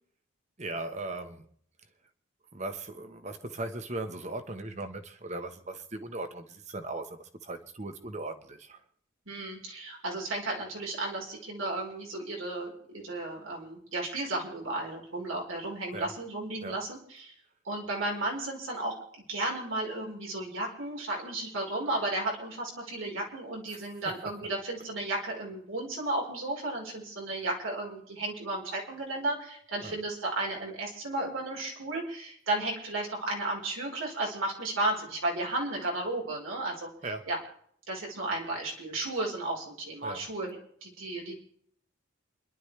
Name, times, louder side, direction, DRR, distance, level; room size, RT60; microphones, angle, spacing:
voice 1, 0.6-1.5 2.5-8.8 15.9-16.1 16.6-16.8 23.7-23.8 29.8-30.0 37.0-37.3 40.0-40.3, right 2 dB, 35° right, 1.2 m, -38 dB
voice 2, 9.3-17.3 17.6-19.0 19.3-36.9 37.3-37.4 37.9-41.4, right 2 dB, 85° right, 4.6 m, -34 dB
29.0 x 11.5 x 3.4 m
head